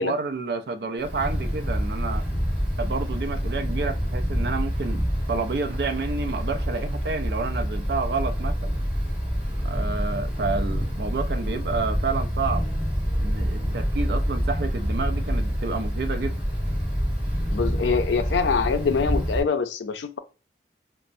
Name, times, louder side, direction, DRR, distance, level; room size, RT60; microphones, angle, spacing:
voice 1, 0.0-2.3 2.8-8.7 9.6-12.7 13.2-16.4, right 4 dB, 60° right, 0.4 m, -30 dB
Wind, 1.0-19.4, equal, 10° right, 1.3 m, -27 dB
voice 2, 17.5-20.2, left 5 dB, 85° left, 0.5 m, -24 dB
4.1 x 2.0 x 2.5 m
head